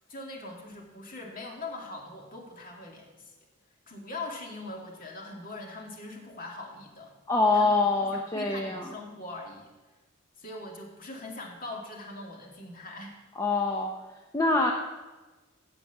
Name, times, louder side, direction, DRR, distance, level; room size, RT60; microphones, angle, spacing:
voice 1, 0.1-3.3 3.9-7.2 7.5-7.7 8.0-9.7 10.4-13.2, left 2 dB, 40° left, -1 dB, 2.2 m, -41 dB
voice 2, 7.3-8.9 13.4-13.9 14.3-14.7, left 3 dB, 15° left, 1 dB, 0.7 m, -25 dB
14.5 x 5.1 x 8.2 m, 1.2 s
head